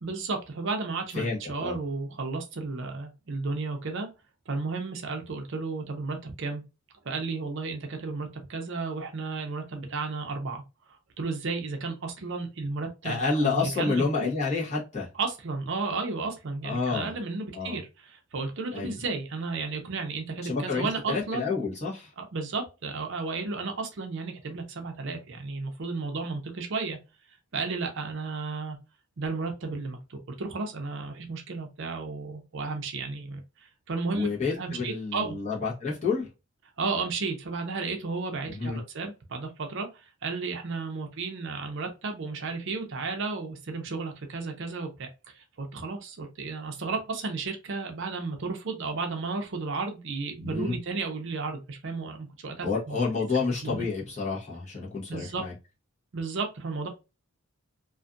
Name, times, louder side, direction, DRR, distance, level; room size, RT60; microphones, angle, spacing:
voice 1, 0.0-4.1 4.5-6.6 7.0-10.6 11.2-14.3 15.2-21.5 22.2-27.0 27.5-28.8 29.2-35.4 36.8-53.0 53.6-53.9 55.1-55.4 56.1-56.9, right 4 dB, 55° right, 4 dB, 0.5 m, -33 dB
voice 2, 1.1-1.8 13.0-15.1 16.6-17.1 17.5-17.8 18.7-18.9 20.4-22.1 34.1-36.3 38.5-38.8 50.4-50.8 52.6-55.5, left 4 dB, 30° left, -5 dB, 0.9 m, -29 dB
2.5 x 2.3 x 2.5 m, 0.28 s
head